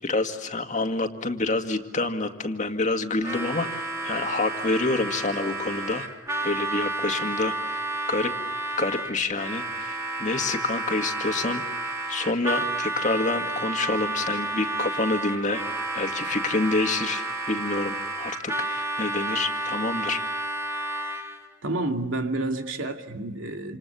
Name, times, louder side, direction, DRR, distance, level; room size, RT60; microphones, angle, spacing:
voice 1, 0.0-6.1 6.4-8.3 8.8-11.6 12.1-15.6 15.9-20.2, left 3 dB, 40° left, 2.0 m, -27 dB
Harmonica, 3.2-21.5, right 2 dB, 15° right, 2.9 m, -31 dB
voice 2, 21.6-23.8, right 2 dB, 80° right, 2.4 m, -29 dB
28.0 x 28.0 x 7.0 m
head